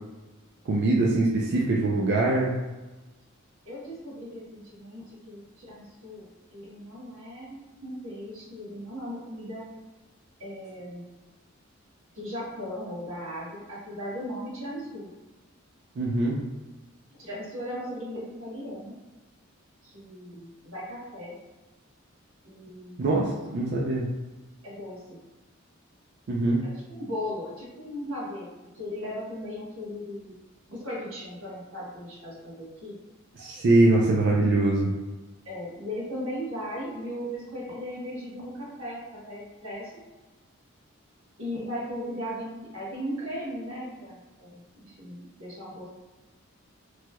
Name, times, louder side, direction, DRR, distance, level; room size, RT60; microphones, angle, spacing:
voice 1, 0.7-2.5 16.0-16.4 23.0-24.1 26.3-26.7 33.4-34.9, right 2 dB, 55° right, -3 dB, 0.4 m, -23 dB
voice 2, 3.6-6.3 6.5-7.6 7.8-9.7 10.4-11.1 12.1-15.1 17.2-18.9 19.8-21.3 22.4-23.3 24.6-25.0 26.6-28.5 28.7-30.3 30.7-32.9 33.4-33.6 35.4-39.9 41.4-45.9, equal, 90° right, -7 dB, 1.3 m, -37 dB
3.1 x 2.9 x 2.2 m, 1.1 s
head